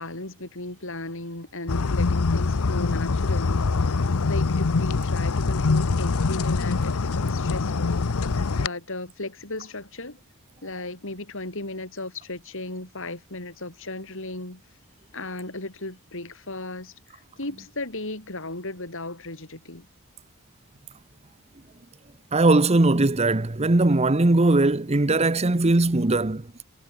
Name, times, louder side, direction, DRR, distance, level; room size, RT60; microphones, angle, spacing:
voice 1, 0.0-3.7 4.3-7.9 8.3-10.2 10.6-14.6 15.1-19.9, left 2 dB, 60° left, 5.2 m, -36 dB
sound 1, 1.7-8.7, left 4 dB, 85° left, 0.8 m, -24 dB
voice 2, 22.3-26.5, right 2 dB, 30° right, 0.9 m, -20 dB
head